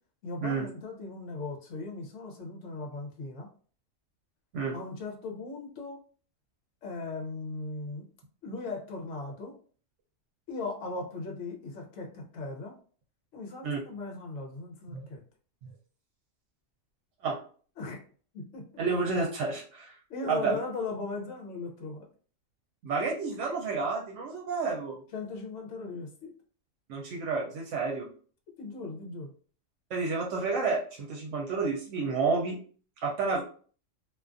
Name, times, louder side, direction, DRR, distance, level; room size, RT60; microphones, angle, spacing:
voice 1, 0.2-3.5 4.7-6.0 6.8-8.0 8.4-9.5 10.5-12.7 13.3-15.2 17.8-18.0 18.3-18.6 20.1-22.1 25.1-26.3 28.6-29.3, left 3 dB, 75° left, 1 dB, 1.0 m, -38 dB
voice 2, 18.8-19.9 20.3-20.6 22.8-25.0 26.9-28.1 29.9-32.6 33.0-33.4, right 4 dB, 75° right, -1 dB, 0.9 m, -30 dB
2.5 x 2.3 x 2.4 m, 0.43 s
omnidirectional pair, 1.3 m